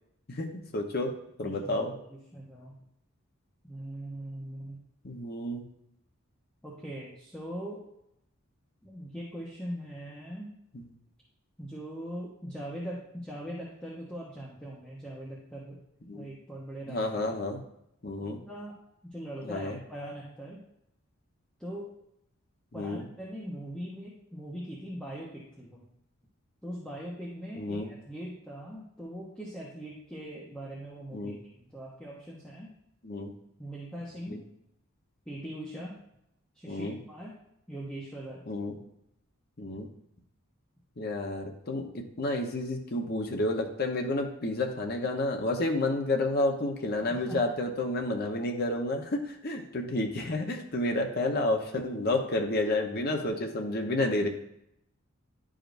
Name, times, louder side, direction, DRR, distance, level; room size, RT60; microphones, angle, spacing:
voice 1, 0.3-1.1 1.4-1.9 5.0-5.6 10.7-10.9 16.1-16.3 16.9-17.6 18.0-18.4 19.4-19.8 22.7-23.0 27.6-27.9 31.1-31.4 33.0-33.3 34.3-34.4 36.7-37.0 38.5-38.8 39.6-39.9 41.0-54.3, left 2 dB, 50° left, 3 dB, 0.9 m, -30 dB
voice 2, 1.4-2.8 3.6-4.8 6.6-7.8 8.8-10.5 11.6-15.8 16.1-17.4 18.2-18.7 19.0-20.6 21.6-21.9 22.7-25.8 26.6-32.7 33.6-34.4 35.3-36.0 36.5-37.3 37.7-38.4 47.0-47.4, equal, 5° left, -6 dB, 1.0 m, -41 dB
10.5 x 5.0 x 2.6 m, 0.78 s
head